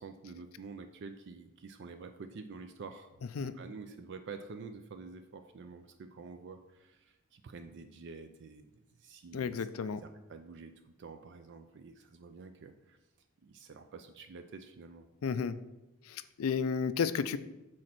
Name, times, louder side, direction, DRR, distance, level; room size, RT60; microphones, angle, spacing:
voice 1, 0.0-3.1 3.4-13.0 13.4-15.1, right 4 dB, 55° right, 7 dB, 0.4 m, -48 dB
voice 2, 9.3-10.0 15.2-15.6 16.1-17.4, left 6 dB, 75° left, 13 dB, 0.4 m, -32 dB
6.4 x 4.3 x 6.0 m, 1.0 s
head